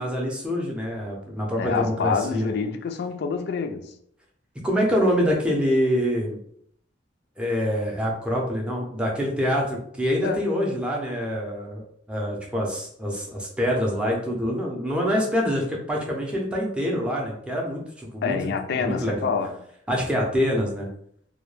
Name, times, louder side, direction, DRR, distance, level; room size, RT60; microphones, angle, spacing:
voice 1, 0.0-2.5 4.6-6.4 7.4-11.8 12.1-18.4 18.7-19.3 19.9-20.9, equal, 5° right, 0.5 m, -25 dB
voice 2, 1.6-3.9 10.2-10.4 18.2-19.5, left 5 dB, 60° left, 0.3 m, -27 dB
2.2 x 2.1 x 3.1 m
head